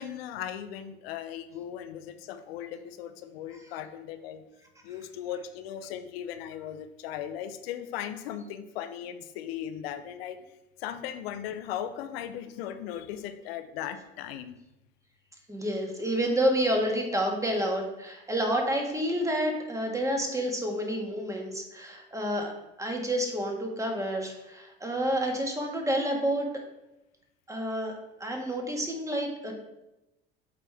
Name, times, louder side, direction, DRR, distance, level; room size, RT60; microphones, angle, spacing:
voice 1, 0.0-4.4 4.8-10.4 10.8-14.5, left 10 dB, 80° left, 10 dB, 0.6 m, -37 dB
voice 2, 15.5-22.5 22.8-26.5 27.5-29.5, equal, 10° right, 1 dB, 1.6 m, -29 dB
7.5 x 4.2 x 3.4 m, 0.95 s
hypercardioid pair, 70°, 29 cm